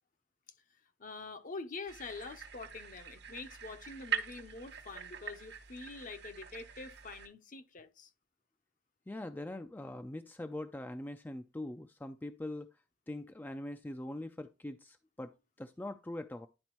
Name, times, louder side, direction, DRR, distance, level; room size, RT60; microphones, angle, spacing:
voice 1, 1.0-8.1, left 3 dB, 45° left, 0.7 m, -46 dB
sound 1, 1.9-7.3, right 8 dB, 65° right, 1.1 m, -43 dB
voice 2, 9.1-12.7 13.1-16.5, left 1 dB, 10° left, 0.3 m, -42 dB
10.5 x 4.1 x 3.0 m
head